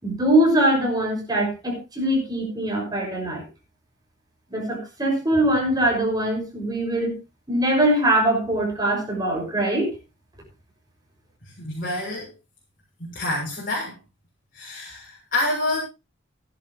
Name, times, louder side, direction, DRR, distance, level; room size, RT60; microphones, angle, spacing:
voice 1, 0.0-3.4 4.5-7.1 7.5-9.9, right 1 dB, 20° right, 0 dB, 6.2 m, -22 dB
voice 2, 11.4-12.3 13.0-14.0 14.5-15.8, left 2 dB, 50° left, -6 dB, 6.9 m, -28 dB
17.0 x 11.0 x 3.1 m, 0.27 s
head